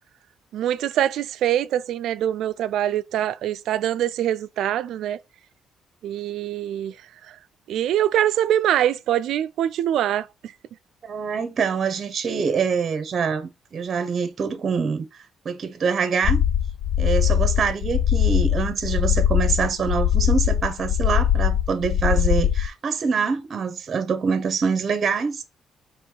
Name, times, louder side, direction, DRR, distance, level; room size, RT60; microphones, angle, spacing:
voice 1, 0.5-5.2 6.0-7.0 7.3-7.4 7.7-10.5, right 11 dB, 80° right, 0.3 m, -24 dB
voice 2, 11.0-15.1 15.4-16.4 17.0-25.4, right 5 dB, 50° right, 0.7 m, -25 dB
sound 1, 16.2-22.7, left 10 dB, 75° left, 0.4 m, -21 dB
4.5 x 3.0 x 3.7 m
cardioid pair, 80°, 0 cm